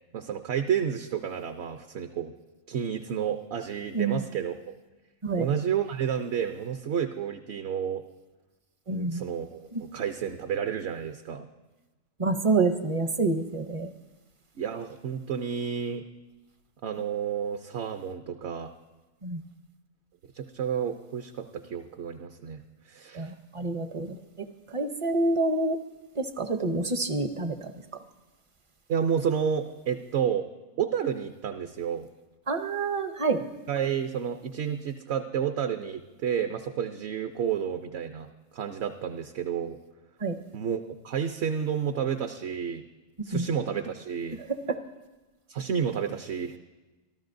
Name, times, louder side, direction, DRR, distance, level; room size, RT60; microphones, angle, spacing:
voice 1, 0.1-2.3 2.7-4.7 5.4-8.0 8.9-11.5 14.6-16.0 16.8-18.7 20.3-23.3 28.9-30.5 30.8-32.1 33.7-38.3 38.5-39.8 40.5-42.8 43.2-44.4 45.5-46.6, right 8 dB, 60° right, 6 dB, 0.8 m, -30 dB
voice 2, 8.9-9.2 9.7-9.8 12.2-13.9 19.2-19.4 23.1-25.8 26.2-27.7 32.5-33.4 40.2-40.4 43.3-43.5 44.4-44.8, right 3 dB, 35° right, 8 dB, 0.5 m, -28 dB
24.5 x 13.5 x 2.6 m, 1.1 s
omnidirectional pair, 1.4 m